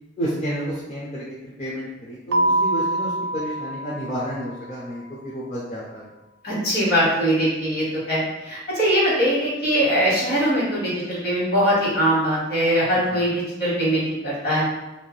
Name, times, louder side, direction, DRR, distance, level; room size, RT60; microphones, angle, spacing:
voice 1, 0.2-6.1 13.1-13.2, equal, 35° left, -7 dB, 0.5 m, -31 dB
Keyboard (musical), 2.3-4.9, right 1 dB, 60° right, 0.3 m, -25 dB
voice 2, 6.4-14.6, equal, 55° left, -8 dB, 1.5 m, -21 dB
2.6 x 2.4 x 3.1 m, 1.0 s
head